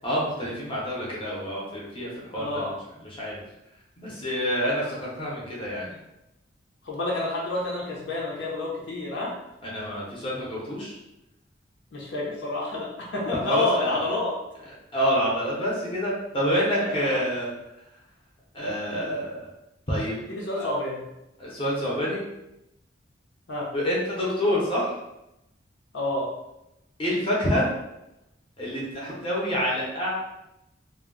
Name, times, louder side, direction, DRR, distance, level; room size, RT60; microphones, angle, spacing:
voice 1, 0.0-2.7 3.1-3.4 4.0-6.0 9.6-11.0 13.3-14.1 14.9-17.5 18.5-19.5 19.9-20.2 20.6-20.7 21.4-22.2 23.7-24.9 27.0-27.7 28.6-30.1, equal, 30° left, -5 dB, 0.7 m, -27 dB
voice 2, 2.3-2.7 6.8-9.3 11.9-14.3 16.7-17.2 20.3-21.1 23.5-23.7 25.9-26.3, left 2 dB, 70° left, -4 dB, 0.7 m, -29 dB
2.2 x 2.1 x 3.6 m, 0.89 s
head